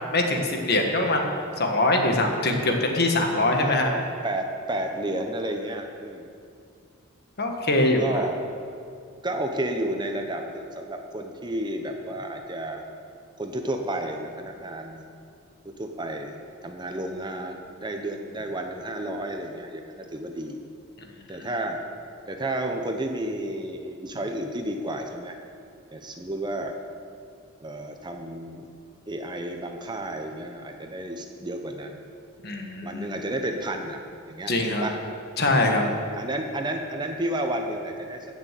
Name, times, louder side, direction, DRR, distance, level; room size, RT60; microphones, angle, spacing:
voice 1, 0.1-1.3 1.6-3.9 7.4-8.2 21.4-21.5 32.4-33.2 34.5-34.9 35.4-35.9, left 2 dB, 50° left, 3 dB, 1.6 m, -23 dB
voice 2, 3.6-6.3 7.8-8.4 9.2-12.8 13.4-15.0 15.6-16.4 16.6-20.6 21.3-21.8 22.3-25.4 25.9-26.7 27.6-28.7 29.1-32.0 32.8-34.0 34.3-35.0 35.9-38.3, right 1 dB, 20° right, 4 dB, 0.8 m, -31 dB
15.5 x 6.7 x 7.5 m, 2.4 s
head